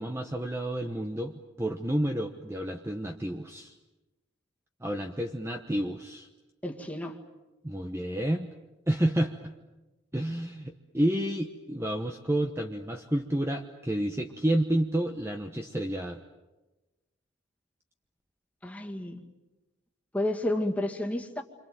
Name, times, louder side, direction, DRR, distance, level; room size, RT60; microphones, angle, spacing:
voice 1, 0.0-3.7 4.8-6.3 7.6-8.5 8.9-9.3 10.1-16.2, right 1 dB, 15° right, 4 dB, 1.0 m, -30 dB
voice 2, 6.6-7.2 18.6-19.2 20.1-21.4, left 1 dB, 5° left, 1 dB, 2.1 m, -31 dB
28.5 x 26.0 x 7.8 m, 1.1 s
head